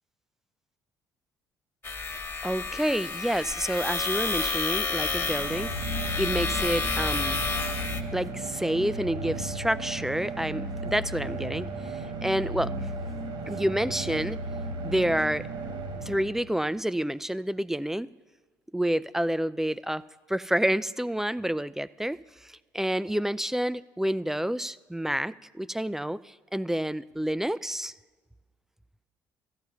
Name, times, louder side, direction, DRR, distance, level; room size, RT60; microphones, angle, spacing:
sound 1, 1.8-8.0, left 4 dB, 25° left, 1.3 m, -30 dB
voice 1, 2.4-5.7 6.2-7.4 8.1-11.7 11.9-12.7 13.5-14.4 14.8-15.4 16.0-18.1 18.7-20.0 20.3-22.2 22.4-27.9, right 1 dB, 5° right, 0.3 m, -28 dB
sound 2, 4.9-16.7, right 2 dB, 60° right, 1.5 m, -35 dB
14.0 x 5.6 x 9.4 m
figure-of-eight pair, 45°, 10 cm